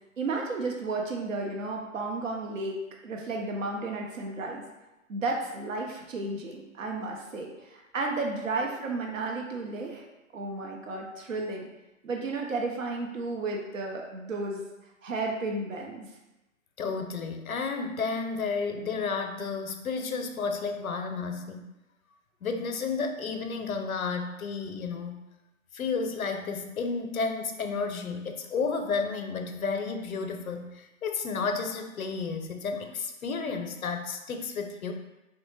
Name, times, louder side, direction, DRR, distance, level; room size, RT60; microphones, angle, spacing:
voice 1, 0.2-4.6 5.1-10.0 10.3-11.7 12.0-14.7 15.0-16.1, right 3 dB, 70° right, 0 dB, 0.7 m, -33 dB
voice 2, 16.8-21.7 22.4-25.2 25.7-34.9, left 4 dB, 85° left, 5 dB, 0.6 m, -32 dB
3.3 x 2.1 x 3.1 m, 0.99 s
figure-of-eight pair, 165°, 41 cm